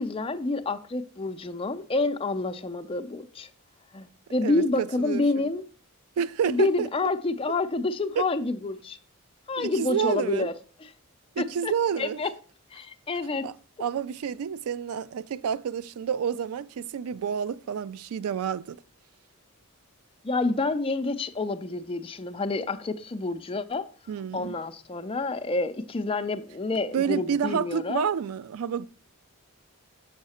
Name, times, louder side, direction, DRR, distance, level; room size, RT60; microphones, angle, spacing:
voice 1, 0.0-3.5 3.9-5.6 6.5-9.0 9.5-10.5 10.8-10.9 11.4-12.3 12.7-13.5 20.2-23.9 24.3-28.0, left 3 dB, 25° left, 0.5 m, -28 dB
voice 2, 4.4-5.5 6.2-6.9 8.2-8.3 9.6-10.5 11.4-12.2 13.4-13.5 13.8-18.8 24.1-24.6 26.9-28.9, right 7 dB, 85° right, 0.3 m, -29 dB
7.2 x 5.7 x 4.2 m
head